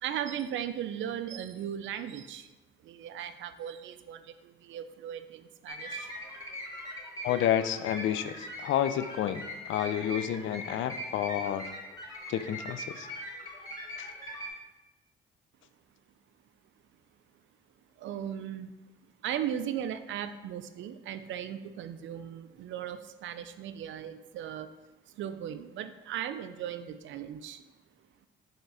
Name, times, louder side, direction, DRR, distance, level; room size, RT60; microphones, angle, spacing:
voice 1, 0.0-2.5 2.8-6.1 18.0-18.7 19.2-24.7 25.1-27.7, right 10 dB, 70° right, 11 dB, 0.5 m, -37 dB
sound 1, 5.7-14.5, equal, 20° left, 2.2 m, -41 dB
voice 2, 7.2-11.7 12.3-13.1 14.0-14.1, left 10 dB, 75° left, 12 dB, 0.5 m, -30 dB
5.6 x 3.6 x 5.5 m, 1.1 s
cardioid pair, 90°, 20 cm